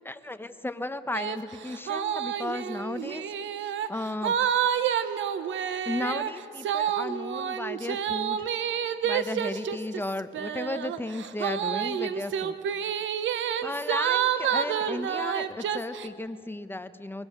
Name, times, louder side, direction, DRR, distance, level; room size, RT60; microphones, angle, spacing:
voice 1, 0.0-3.2 3.9-4.3 5.8-8.5 9.0-12.7 13.6-17.3, left 2 dB, 10° left, 11 dB, 1.0 m, -34 dB
sound 1, 1.1-1.4 1.7-16.1, right 9 dB, 70° right, 1.1 m, -29 dB
22.5 x 22.0 x 6.7 m, 2.4 s
cardioid pair, 90°, 20 cm